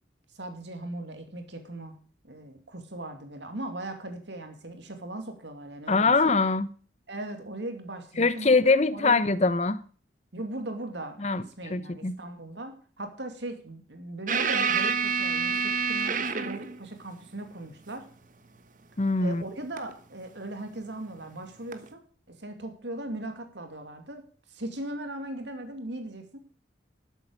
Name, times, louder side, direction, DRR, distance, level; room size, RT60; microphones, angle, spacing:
voice 1, 0.3-2.0 2.2-6.4 7.1-9.2 10.3-18.1 19.2-22.0 22.3-24.2 24.5-26.4, right 1 dB, 70° right, 2.4 m, -38 dB
voice 2, 5.9-6.7 8.2-9.8 11.2-11.4 11.7-12.1 19.0-19.4, left 3 dB, 35° left, 0.8 m, -23 dB
sound 1, 14.3-16.8 19.8-19.9 21.7-21.9, right 5 dB, 45° right, 1.3 m, -27 dB
12.5 x 8.3 x 6.7 m
head